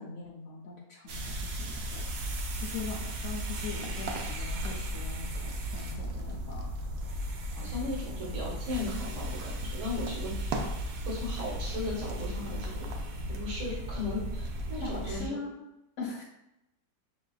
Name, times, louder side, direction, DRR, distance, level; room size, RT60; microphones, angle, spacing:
voice 1, 0.0-2.0 2.6-6.7 14.8-15.7 16.0-16.2, left 4 dB, 65° left, -2 dB, 0.8 m, -41 dB
sound 1, 1.1-15.3, right 1 dB, 70° right, 1.0 m, -35 dB
voice 2, 7.6-10.7 11.0-12.9 13.3-15.3, left 2 dB, 55° right, -4 dB, 1.4 m, -37 dB
6.0 x 2.4 x 2.3 m, 0.87 s
omnidirectional pair, 1.6 m